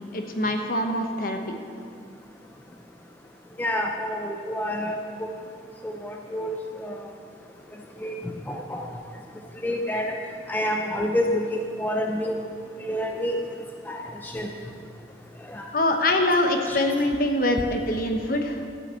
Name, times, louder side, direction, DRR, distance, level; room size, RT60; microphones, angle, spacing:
voice 1, 0.1-1.6 15.7-18.6, left 1 dB, 50° left, 4 dB, 1.1 m, -24 dB
voice 2, 3.6-5.0 5.8-6.6 6.8-7.0 8.0-9.0 9.6-10.1 10.5-12.4 12.8-13.4 13.9-14.5 15.5-15.7 16.7-16.8, equal, 10° left, 1 dB, 0.6 m, -28 dB
13.5 x 5.7 x 7.6 m, 2.3 s
head